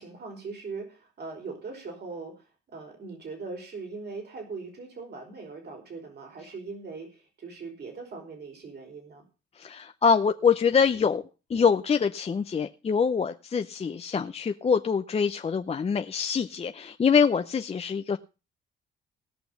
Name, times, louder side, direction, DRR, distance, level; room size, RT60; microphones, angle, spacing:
voice 1, 0.0-2.4 2.7-9.2, right 4 dB, 55° right, 3 dB, 5.0 m, -40 dB
voice 2, 9.6-11.2 11.5-18.2, left 6 dB, 30° left, 8 dB, 0.7 m, -24 dB
17.5 x 6.0 x 7.0 m, 0.33 s
cardioid pair, 90°, 20 cm